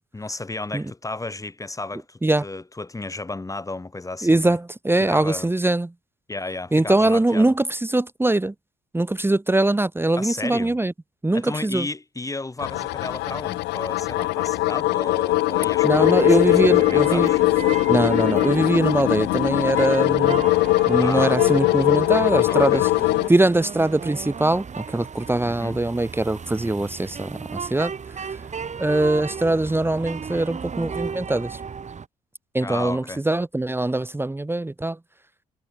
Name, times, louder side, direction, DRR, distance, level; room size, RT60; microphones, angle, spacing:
voice 1, 0.1-4.6 5.0-5.5 6.3-7.5 10.2-10.8 11.3-17.4 21.0-21.4 22.5-22.8 25.4-25.8 32.6-33.2, left 2 dB, 15° left, 1.5 m, -33 dB
voice 2, 4.2-5.9 6.7-8.5 8.9-10.9 11.2-11.9 15.8-17.3 17.9-20.4 20.9-22.9 23.3-27.9 28.8-31.6 32.5-35.0, right 2 dB, 10° right, 1.3 m, -22 dB
sound 1, 12.6-23.3, left 18 dB, 65° left, 0.9 m, -21 dB
sound 2, 16.0-32.1, right 6 dB, 40° right, 3.5 m, -35 dB
hypercardioid pair, 50°, 19 cm